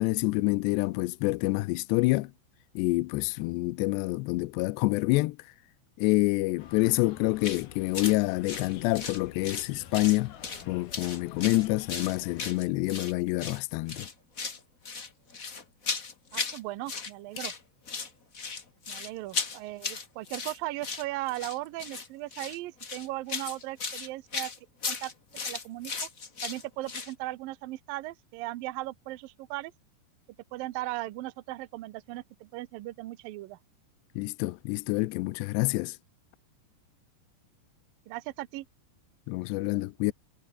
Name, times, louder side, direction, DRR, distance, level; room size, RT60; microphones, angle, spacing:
voice 1, 0.0-2.3 2.8-5.4 6.0-10.3 10.7-14.1 34.2-36.0 39.3-40.1, left 21 dB, 85° left, 2.8 m, -27 dB
sound 1, 6.6-12.5, left 9 dB, 60° left, 4.0 m, -49 dB
sound 2, 7.4-7.6 7.9-8.2 8.4-9.7 9.9-10.6 10.9-13.1 13.4-13.6 13.9-14.6 14.8-16.6 16.9-17.6 17.9-27.1, left 5 dB, 40° left, 1.1 m, -36 dB
voice 2, 16.3-17.5 18.9-24.5 24.9-25.1 25.4-26.1 26.4-29.7 30.5-33.6 38.1-38.7, right 18 dB, 75° right, 2.1 m, -37 dB
omnidirectional pair, 5.1 m